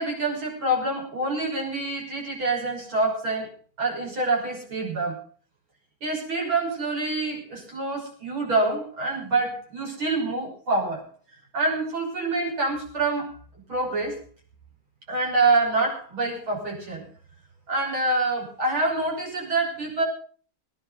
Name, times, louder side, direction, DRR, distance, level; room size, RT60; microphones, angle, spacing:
voice 1, 0.0-3.5 3.8-5.2 6.0-11.0 11.5-13.3 13.7-14.2 15.1-17.1 17.7-20.0, right 2 dB, 80° right, -1 dB, 6.9 m, -26 dB
19.5 x 10.5 x 5.4 m, 0.43 s
omnidirectional pair, 2.2 m